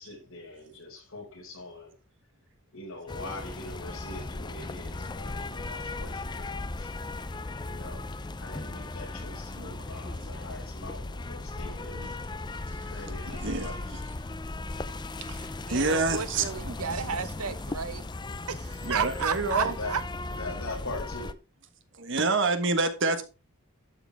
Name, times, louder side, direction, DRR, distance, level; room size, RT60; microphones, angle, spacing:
voice 1, 0.0-1.9 2.7-6.5 6.8-6.9 7.6-12.1 12.9-14.0 15.1-15.2 19.6-19.9 20.3-21.3, left 2 dB, 70° left, 5.6 m, -42 dB
sound 1, 3.1-21.3, left 2 dB, 20° left, 0.5 m, -37 dB
voice 2, 13.3-14.0 15.3-16.8 18.8-19.7 22.0-23.2, right 3 dB, 55° right, 1.4 m, -28 dB
voice 3, 15.7-18.0 18.5-20.0, right 6 dB, 85° right, 1.0 m, -32 dB
12.0 x 7.0 x 3.5 m
head